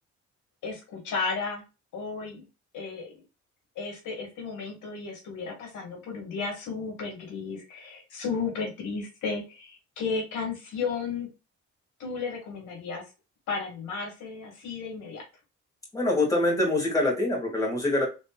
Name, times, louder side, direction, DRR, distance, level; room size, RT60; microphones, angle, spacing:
voice 1, 0.6-1.6 1.9-2.4 2.7-3.1 3.8-11.3 12.0-13.0 13.5-15.2, left 4 dB, 80° left, 0 dB, 1.7 m, -33 dB
voice 2, 15.9-18.0, left 2 dB, 10° left, -3 dB, 2.1 m, -24 dB
3.9 x 3.3 x 2.3 m, 0.29 s
cardioid pair, 90°, 30 cm